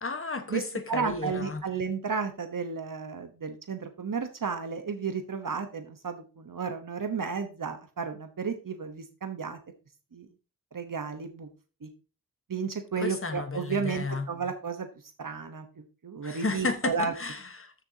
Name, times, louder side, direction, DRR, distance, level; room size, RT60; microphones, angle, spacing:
voice 1, 0.0-1.6 13.0-14.3 16.2-17.7, left 3 dB, 35° left, 1.3 m, -33 dB
voice 2, 0.9-9.6 10.1-10.3 10.7-11.5 11.8-11.9 12.5-14.9 15.2-17.1, right 5 dB, 60° right, 1.1 m, -33 dB
13.5 x 6.9 x 2.8 m
wide cardioid pair, 105°, 36 cm